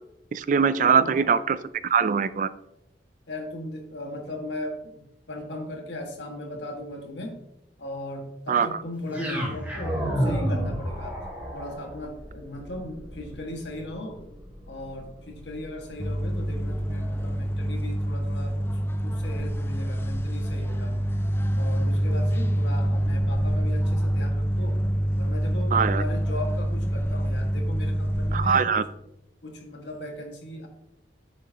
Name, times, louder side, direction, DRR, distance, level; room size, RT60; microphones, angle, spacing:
voice 1, 0.3-1.6 1.8-2.5 8.5-8.7 25.7-26.0 28.3-28.8, right 6 dB, 45° right, 15 dB, 0.3 m, -22 dB
voice 2, 0.8-1.2 3.3-7.4 7.8-11.2 11.5-14.2 14.7-21.1 21.6-24.8 25.2-28.9 29.4-30.7, left 1 dB, 80° left, 2 dB, 1.8 m, -38 dB
sound 1, 9.1-17.3, equal, 10° right, 2.3 m, -32 dB
sound 2, 16.0-28.5, equal, 15° left, 0.5 m, -26 dB
9.9 x 6.8 x 2.9 m, 0.85 s
head